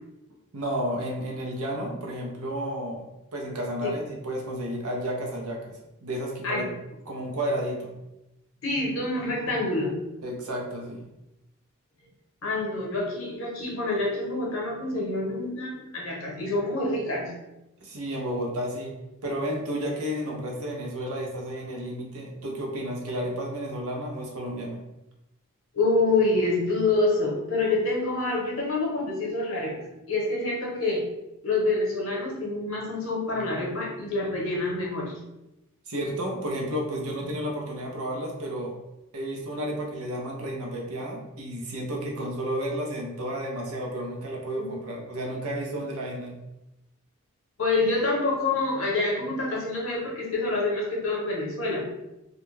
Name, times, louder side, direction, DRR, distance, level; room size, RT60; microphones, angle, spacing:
voice 1, 0.5-3.0 3.3-5.7 6.0-6.7 7.1-7.9 10.2-11.0 17.8-18.9 19.2-24.8 35.9-38.7 39.1-46.3, equal, 80° right, -1 dB, 0.7 m, -32 dB
voice 2, 8.6-10.0 12.4-17.4 25.7-31.1 31.4-35.1 47.6-51.9, left 2 dB, 65° left, -3 dB, 0.8 m, -27 dB
2.4 x 2.2 x 3.1 m, 0.93 s
head